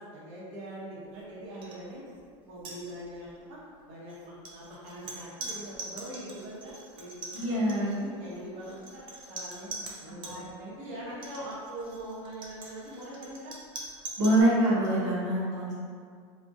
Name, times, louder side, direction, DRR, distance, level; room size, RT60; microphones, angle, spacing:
voice 1, 0.0-2.0 2.5-7.4 7.9-9.0 9.3-13.5, right 1 dB, 55° right, -8 dB, 0.8 m, -42 dB
sound 1, 1.6-1.8 2.1-2.2 2.6-3.3 4.1-10.4 11.1-14.4, right 3 dB, 35° right, 0.4 m, -43 dB
voice 2, 7.3-7.9 10.1-10.5 14.2-15.7, right 1 dB, 85° right, -8 dB, 0.8 m, -25 dB
2.3 x 2.1 x 2.6 m, 2.1 s
supercardioid pair, 125°, 15 cm